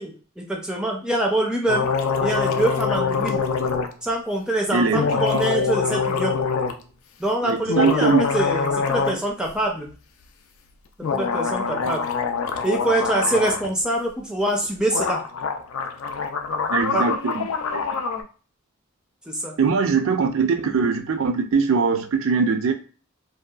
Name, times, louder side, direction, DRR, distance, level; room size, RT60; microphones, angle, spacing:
voice 1, 0.0-1.9 2.2-3.4 4.0-6.3 7.2-9.9 11.1-12.0 12.6-15.2 16.9-17.1 19.3-19.5, right 1 dB, 5° right, -1 dB, 0.4 m, -24 dB
sound 1, 1.7-3.9 4.9-6.8 7.6-9.2 9.5-9.6 11.0-13.7 14.6-14.7 14.9-18.2, left 5 dB, 70° left, 0.4 m, -24 dB
voice 2, 4.7-5.4 7.4-8.3 16.7-17.5 17.7-17.8 19.6-22.7, right 5 dB, 65° right, 5 dB, 0.4 m, -21 dB
2.7 x 2.2 x 2.3 m, 0.37 s
head